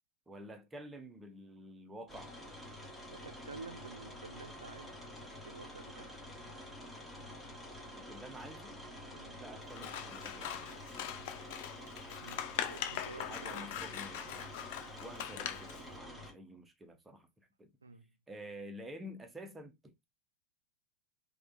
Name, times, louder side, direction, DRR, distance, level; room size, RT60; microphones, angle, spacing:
voice 1, 0.3-2.3 8.0-8.8 9.4-10.7 13.2-14.5 15.0-17.3 17.6-17.7 18.3-19.9, equal, 10° right, 0.7 m, -49 dB
sound 1, 2.1-16.3, left 1 dB, 5° left, 1.2 m, -49 dB
voice 2, 3.1-5.1 5.4-6.2 9.1-9.4 12.2-13.7 17.8-18.1, right 4 dB, 75° right, 0.5 m, -50 dB
Scissors, 9.7-15.8, left 10 dB, 50° left, 0.5 m, -41 dB
3.5 x 2.3 x 2.5 m
figure-of-eight pair, 90°, 0 cm